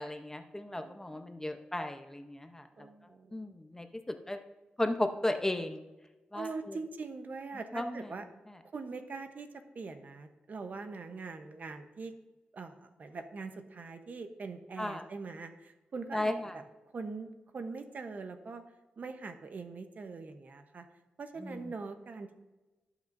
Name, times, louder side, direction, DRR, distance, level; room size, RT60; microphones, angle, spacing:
voice 1, 0.0-2.9 3.3-4.4 4.8-5.8 6.3-6.8 7.7-8.1 14.8-15.0 16.1-16.6 21.4-21.7, left 1 dB, 15° left, 6 dB, 0.8 m, -35 dB
voice 2, 0.7-1.4 2.8-3.5 6.3-8.2 8.6-12.1 12.5-16.3 16.9-18.6 19.0-20.8 21.2-22.3, right 4 dB, 55° right, 7 dB, 0.9 m, -43 dB
17.0 x 6.1 x 2.6 m, 1.1 s
cardioid pair, 85°, 3 cm